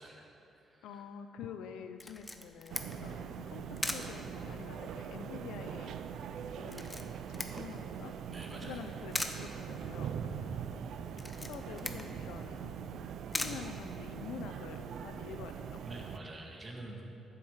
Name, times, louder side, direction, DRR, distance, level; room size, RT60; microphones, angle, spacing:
voice 1, 0.0-1.0 8.3-8.8 15.9-17.0, right 2 dB, 35° right, 0 dB, 2.1 m, -48 dB
voice 2, 0.8-6.0 6.5-8.1 8.6-10.6 11.4-12.7 13.3-15.8, left 7 dB, 85° left, 8 dB, 0.6 m, -47 dB
Camera, 2.0-14.5, left 2 dB, 15° left, 0.9 m, -43 dB
sound 1, 2.7-16.2, right 7 dB, 70° right, 0.5 m, -42 dB
9.9 x 7.7 x 7.4 m, 2.9 s
cardioid pair, 90°, 0 cm